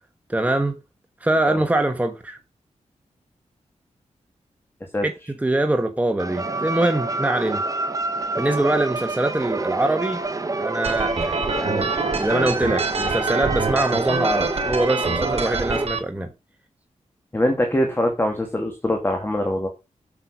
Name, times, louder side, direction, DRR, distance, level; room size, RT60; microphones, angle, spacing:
voice 1, 0.3-0.8 1.2-2.4 5.0-5.1 5.4-7.6 8.4-10.2 10.6-16.3, right 2 dB, 10° right, 1.3 m, -23 dB
sound 1, 6.2-15.9, right 3 dB, 30° right, 1.3 m, -28 dB
sound 2, 10.8-16.0, right 4 dB, 55° right, 2.7 m, -26 dB
voice 2, 17.3-19.7, left 1 dB, 20° left, 2.4 m, -23 dB
8.4 x 7.7 x 6.1 m
wide cardioid pair, 140°, 12 cm